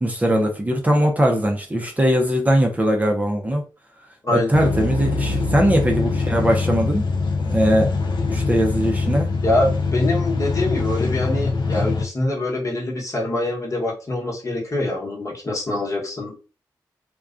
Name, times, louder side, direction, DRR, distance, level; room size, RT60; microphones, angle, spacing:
voice 1, 0.0-3.6 4.3-7.0 7.4-7.9 8.3-9.3, equal, 20° right, 0.6 m, -20 dB
sound 1, 4.5-12.0, left 3 dB, 65° left, 0.5 m, -23 dB
voice 2, 9.4-16.4, left 1 dB, 40° left, 1.1 m, -24 dB
2.3 x 2.2 x 2.4 m
supercardioid pair, 45°, 8 cm